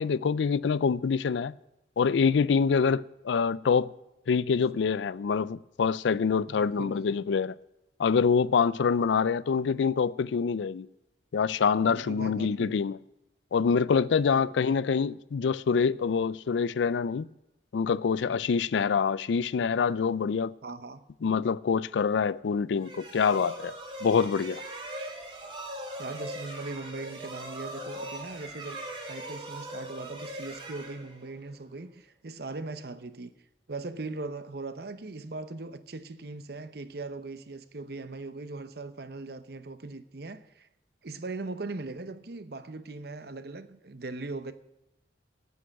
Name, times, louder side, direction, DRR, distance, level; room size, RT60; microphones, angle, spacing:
voice 1, 0.0-1.5 2.0-3.9 4.3-7.6 8.0-10.9 11.3-13.0 13.5-17.3 17.7-20.5 21.2-23.7 24.0-24.6, left 6 dB, 80° left, 0.4 m, -25 dB
voice 2, 6.5-6.9 11.9-12.8 14.3-14.8 20.6-21.0 26.0-28.8 29.1-33.3 33.7-40.7 41.0-44.5, right 3 dB, 55° right, 0.8 m, -39 dB
sound 1, 22.8-31.5, right 1 dB, 25° right, 1.9 m, -40 dB
9.4 x 8.6 x 9.0 m
head